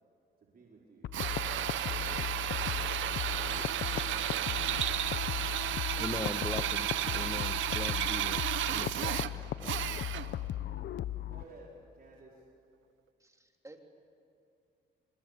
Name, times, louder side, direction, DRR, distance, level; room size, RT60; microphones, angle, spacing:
voice 1, 0.4-3.9 5.2-5.8 10.1-10.6 11.3-11.7 11.9-12.4, right 3 dB, 50° right, 4.8 m, -57 dB
sound 1, 1.0-11.4, left 12 dB, 65° left, 0.9 m, -37 dB
Drill, 1.1-10.4, right 12 dB, 75° right, 0.9 m, -33 dB
voice 2, 6.0-9.7, left 2 dB, 15° left, 1.3 m, -41 dB
voice 3, 13.2-13.8, right 2 dB, 15° right, 3.5 m, -53 dB
27.0 x 26.0 x 8.4 m
cardioid pair, 90°, 20 cm